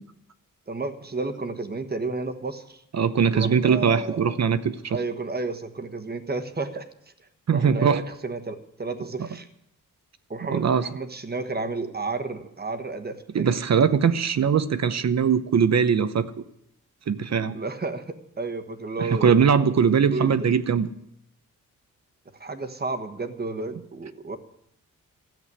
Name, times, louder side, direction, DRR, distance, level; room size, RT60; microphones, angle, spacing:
voice 1, 0.7-2.8 3.3-4.4 4.9-6.8 7.5-9.5 10.3-13.5 17.5-19.7 20.1-20.5 22.4-24.4, right 3 dB, 30° right, 6 dB, 1.3 m, -32 dB
voice 2, 2.9-5.0 7.5-8.0 9.2-9.3 10.5-10.9 13.3-16.4 17.1-17.6 19.0-20.9, right 6 dB, 50° right, 12 dB, 0.8 m, -21 dB
14.0 x 7.8 x 9.8 m, 0.78 s
wide cardioid pair, 125°, 34 cm